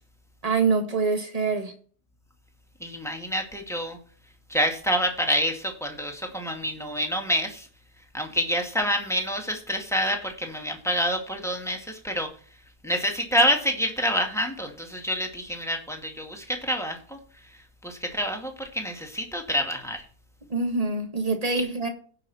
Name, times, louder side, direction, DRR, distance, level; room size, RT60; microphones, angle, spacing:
voice 1, 0.4-1.7 20.5-21.9, right 4 dB, 25° right, 6 dB, 1.7 m, -25 dB
voice 2, 2.8-4.0 4.5-7.7 8.1-12.3 12.8-17.2 17.8-20.0, equal, ahead, 3 dB, 2.0 m, -27 dB
17.0 x 5.9 x 4.2 m, 0.43 s
omnidirectional pair, 1.7 m